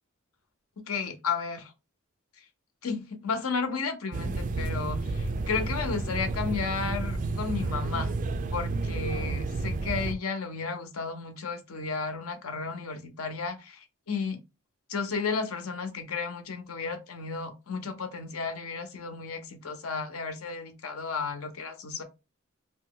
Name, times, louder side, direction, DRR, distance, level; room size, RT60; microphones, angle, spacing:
voice 1, 0.9-1.7 2.8-8.1 8.5-14.4 14.9-22.0, left 5 dB, 80° left, 0.8 m, -33 dB
sound 1, 4.1-10.1, right 3 dB, 40° right, 0.3 m, -31 dB
2.6 x 2.2 x 3.8 m
head